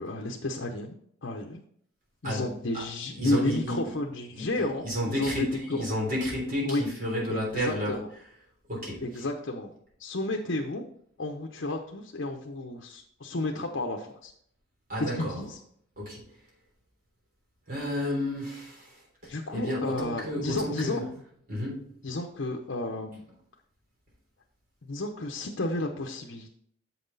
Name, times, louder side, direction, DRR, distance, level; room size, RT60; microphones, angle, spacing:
voice 1, 0.0-1.6 2.2-5.9 6.6-6.9 7.3-8.1 9.0-9.7 10.0-10.8 11.2-14.3 15.0-15.5 19.3-21.0 22.0-23.2 24.9-26.5, left 2 dB, 70° left, 2 dB, 0.8 m, -32 dB
voice 2, 2.2-2.8 3.2-3.8 4.3-8.0 8.7-9.0 14.9-15.4 16.0-16.2 17.7-21.1 21.5-21.9, equal, 45° right, -3 dB, 3.5 m, -32 dB
7.3 x 5.9 x 4.0 m, 0.66 s
head